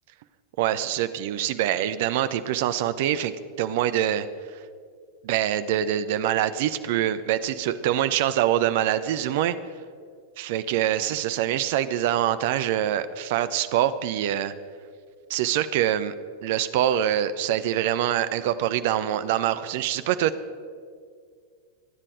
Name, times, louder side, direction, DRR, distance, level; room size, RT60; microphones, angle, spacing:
voice 1, 0.6-3.3 3.6-4.3 5.2-9.6 10.4-14.5 15.3-16.1 16.4-20.3, right 11 dB, 50° right, 13 dB, 0.8 m, -24 dB
27.5 x 10.0 x 5.0 m, 2.1 s
figure-of-eight pair, 90°, 0 cm